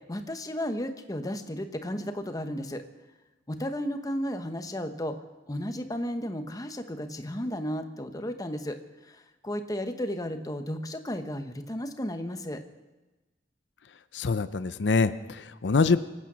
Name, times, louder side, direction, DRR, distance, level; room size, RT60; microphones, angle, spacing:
voice 1, 0.1-2.8 3.5-5.2 5.5-8.8 9.1-12.6, equal, 20° left, 7 dB, 1.0 m, -33 dB
voice 2, 14.1-16.0, left 4 dB, 85° left, 13 dB, 0.6 m, -25 dB
24.5 x 8.9 x 6.2 m, 1.1 s
head